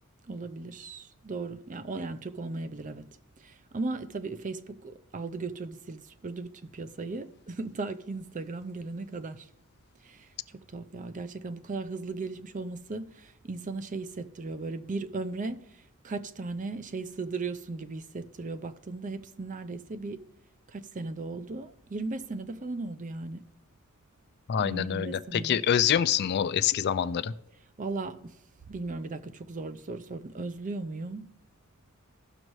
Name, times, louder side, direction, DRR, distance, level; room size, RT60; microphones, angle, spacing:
voice 1, 0.3-3.1 3.4-9.5 10.0-10.3 10.5-15.7 16.0-20.3 20.7-23.4 24.6-25.6 27.8-28.3 28.7-31.3, right 3 dB, 35° right, 0.5 m, -37 dB
voice 2, 24.5-27.3, left 9 dB, 50° left, 0.3 m, -26 dB
16.5 x 6.4 x 3.1 m
head